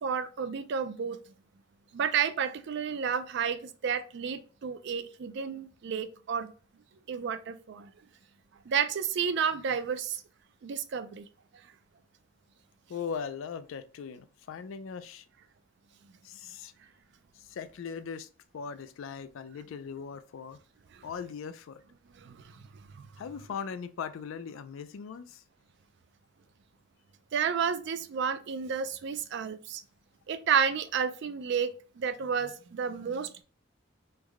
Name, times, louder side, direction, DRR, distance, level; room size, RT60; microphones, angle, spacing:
voice 1, 0.0-1.2 1.9-6.5 7.1-7.9 8.7-10.2 10.6-11.3 20.9-21.0 22.2-22.7 22.9-23.1 27.3-29.8 30.3-33.4, right 7 dB, 60° right, 11 dB, 0.4 m, -31 dB
voice 2, 12.9-15.3 16.2-16.7 17.4-18.3 18.5-20.6 21.0-21.8 23.2-25.4, left 6 dB, 80° left, 12 dB, 0.3 m, -39 dB
3.3 x 2.1 x 3.5 m, 0.37 s
head